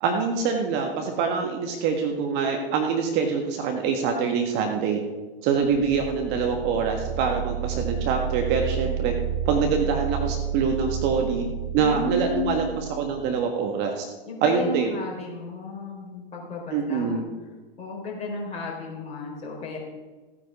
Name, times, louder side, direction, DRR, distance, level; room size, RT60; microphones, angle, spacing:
voice 1, 0.0-5.0 5.4-9.1 9.4-11.5 11.7-14.0 14.4-14.9 16.7-17.2, right 5 dB, 35° right, 3 dB, 1.6 m, -25 dB
sound 1, 5.7-13.3, right 9 dB, 5° right, 3.0 m, -31 dB
voice 2, 11.8-12.7 14.3-17.2 17.8-19.8, left 3 dB, 20° left, -2 dB, 4.3 m, -33 dB
15.5 x 9.5 x 4.8 m, 1.2 s
figure-of-eight pair, 100°, 30 cm